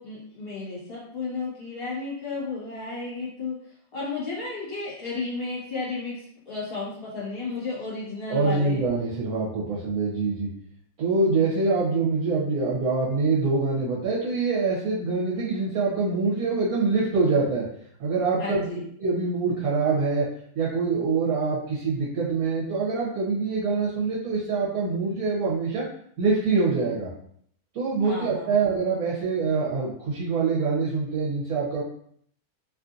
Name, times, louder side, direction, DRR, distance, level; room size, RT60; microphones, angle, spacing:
voice 1, 0.0-3.5 3.9-8.8 9.6-9.8 18.4-18.8 28.0-28.5, left 3 dB, 40° left, -7 dB, 1.4 m, -33 dB
voice 2, 8.3-10.5 11.0-17.6 18.0-18.6 19.0-20.3 20.5-25.8 26.2-27.1 27.7-31.8, right 4 dB, 75° right, -7 dB, 1.3 m, -25 dB
2.9 x 2.6 x 2.5 m, 0.63 s
omnidirectional pair, 1.6 m